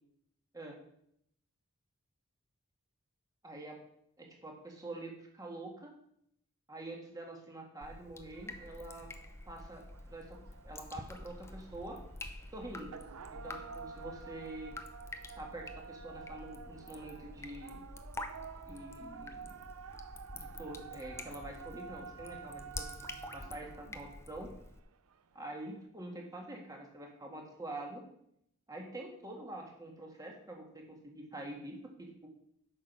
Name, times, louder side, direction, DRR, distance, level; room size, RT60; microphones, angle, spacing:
voice 1, 3.4-3.8 4.2-5.9 6.7-9.1 9.5-10.4 10.6-12.0 12.5-13.0 13.3-14.8 15.4-17.8 18.7-19.6 20.3-22.9 23.3-24.5 25.3-28.0 28.7-32.3, right 1 dB, 15° right, 0 dB, 1.8 m, -46 dB
Drip, 7.8-24.8, left 2 dB, 10° left, 0.5 m, -48 dB
sound 1, 8.3-25.9, right 6 dB, 80° right, 0.6 m, -51 dB
8.7 x 6.0 x 6.1 m, 0.73 s
head